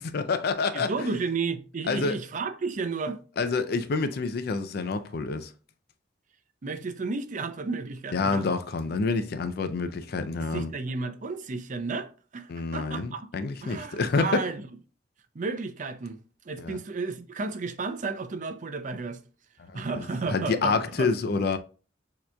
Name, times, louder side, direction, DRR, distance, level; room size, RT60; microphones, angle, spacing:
voice 1, 0.0-0.9 1.9-2.2 3.4-5.5 8.1-10.7 12.5-14.4 16.6-16.8 19.6-21.6, left 4 dB, 60° left, 0.4 m, -28 dB
voice 2, 0.7-3.2 6.6-8.5 10.4-13.3 13.6-14.6 15.3-16.2 16.5-19.2 19.7-21.1, right 4 dB, 45° right, 0.5 m, -32 dB
6.5 x 2.9 x 2.2 m
head